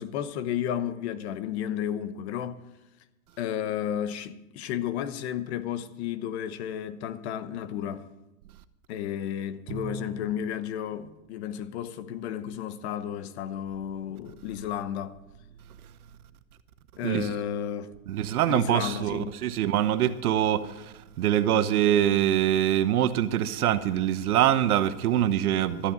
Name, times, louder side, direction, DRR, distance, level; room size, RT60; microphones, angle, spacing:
voice 1, 0.0-2.6 3.4-8.1 8.9-15.2 17.0-17.9 18.5-19.3, left 10 dB, 45° left, 1.0 m, -32 dB
Bowed string instrument, 9.7-10.6, right 6 dB, 35° right, 1.0 m, -40 dB
voice 2, 17.0-17.3 18.1-25.9, right 11 dB, 80° right, 1.2 m, -24 dB
13.0 x 8.4 x 9.0 m
supercardioid pair, 155°, 44 cm